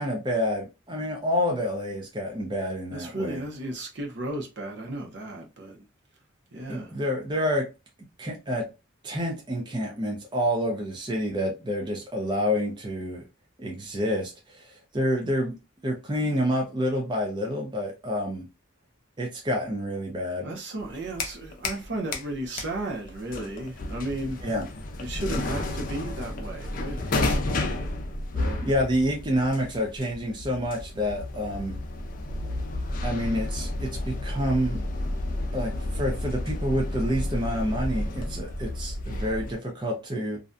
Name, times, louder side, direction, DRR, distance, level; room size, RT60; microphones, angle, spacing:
voice 1, 0.0-3.4 6.7-7.6 8.2-8.6 9.0-13.2 13.6-15.5 15.8-18.5 19.2-20.5 24.4-24.7 28.6-31.8 33.0-34.8 35.5-40.4, equal, 25° right, 0.5 m, -28 dB
voice 2, 2.9-5.9 6.5-7.0 20.4-24.4 25.0-27.9 28.3-28.7, right 1 dB, 60° right, 0.7 m, -34 dB
sound 1, 20.8-21.9 22.1-39.6, left 2 dB, 45° left, 0.4 m, -31 dB
2.5 x 2.2 x 2.5 m
head